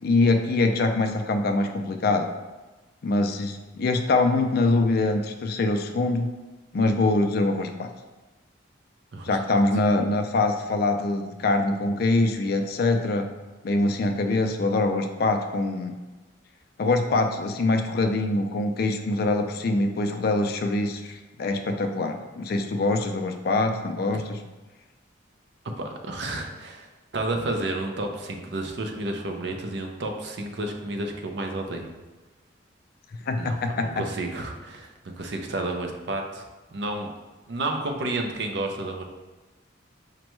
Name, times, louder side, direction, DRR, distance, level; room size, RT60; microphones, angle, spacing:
voice 1, 0.0-2.3 3.0-6.3 6.7-7.9 9.2-13.3 13.6-15.9 16.8-24.4 33.3-34.0, left 2 dB, 50° left, 6 dB, 0.3 m, -24 dB
voice 2, 9.1-9.6 25.8-26.9 27.1-31.9 33.4-36.4 36.7-37.1 37.5-39.0, right 2 dB, 55° right, 3 dB, 0.5 m, -31 dB
5.1 x 2.2 x 3.0 m, 1.2 s
head